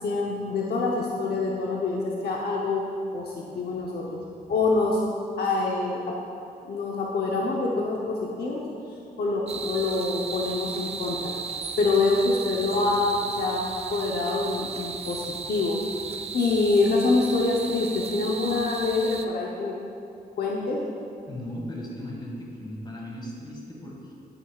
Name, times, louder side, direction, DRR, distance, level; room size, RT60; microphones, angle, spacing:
voice 1, 0.0-2.8 3.1-4.2 4.5-5.0 5.4-6.0 6.6-8.6 9.2-11.3 11.8-13.6 13.9-15.8 16.3-19.7 20.4-20.8, left 3 dB, 80° left, -3 dB, 0.8 m, -25 dB
sound 1, 9.5-19.3, right 5 dB, 40° right, 0.4 m, -35 dB
voice 2, 21.3-24.1, left 1 dB, 25° left, -3 dB, 1.8 m, -37 dB
9.1 x 9.1 x 2.4 m, 2.6 s
wide cardioid pair, 125°, 16 cm